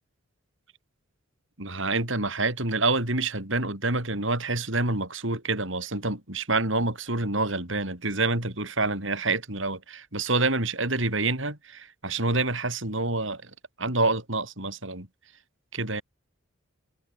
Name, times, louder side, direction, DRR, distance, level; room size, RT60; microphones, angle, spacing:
voice 1, 1.6-13.5 13.8-15.1 15.7-16.0, right 3 dB, 65° right, 6.2 m, -27 dB
head